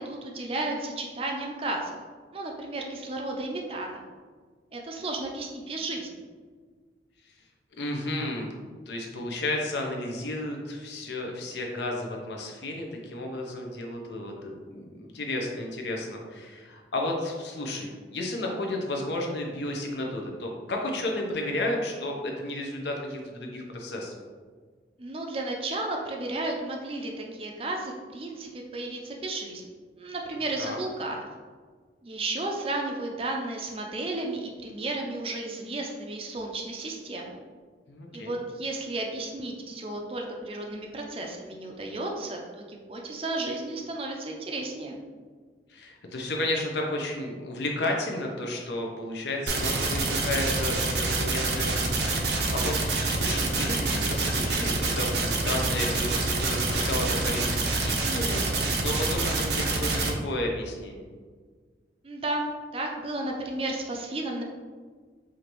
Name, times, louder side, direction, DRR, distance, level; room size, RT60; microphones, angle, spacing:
voice 1, 0.0-2.0 2.3-4.0 4.7-6.2 25.0-29.6 30.0-31.2 32.0-37.4 38.1-45.0 62.0-62.5 62.7-64.4, right 2 dB, 30° right, 1 dB, 0.4 m, -33 dB
voice 2, 7.8-8.5 8.9-24.1 30.6-30.8 37.9-38.4 45.7-52.8 53.0-61.0, left 1 dB, 75° left, 1 dB, 0.7 m, -32 dB
sound 1, 49.5-60.1, right 3 dB, 70° right, 0.7 m, -27 dB
5.0 x 2.6 x 3.0 m, 1.5 s
head